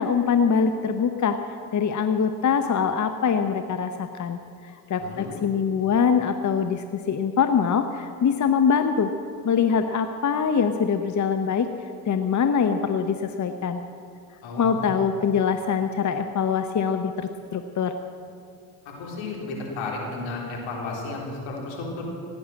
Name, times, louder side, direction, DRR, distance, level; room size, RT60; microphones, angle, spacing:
voice 1, 0.0-1.4 1.7-9.1 9.4-11.7 12.1-13.8 14.6-17.9, left 6 dB, 40° left, 8 dB, 0.9 m, -23 dB
voice 2, 14.4-14.8 19.0-22.0, left 3 dB, 75° left, -1 dB, 3.8 m, -33 dB
17.0 x 9.8 x 7.7 m, 2.5 s
hypercardioid pair, 55°, 47 cm